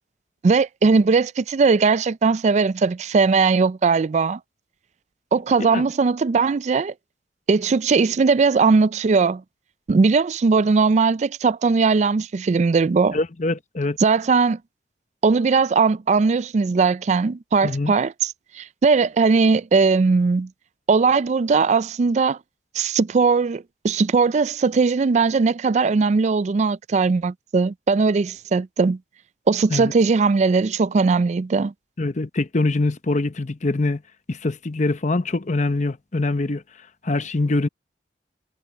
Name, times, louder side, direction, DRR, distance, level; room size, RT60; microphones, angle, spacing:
voice 1, 0.4-4.4 5.3-6.9 7.5-9.4 9.9-13.2 14.0-14.6 15.2-20.5 20.9-22.4 22.7-29.0 29.5-31.7, right 4 dB, 40° right, 0.3 m, -19 dB
voice 2, 13.1-14.0 17.6-17.9 29.7-29.9 32.0-34.0 34.3-36.6 37.0-37.7, left 2 dB, 40° left, 0.8 m, -23 dB
head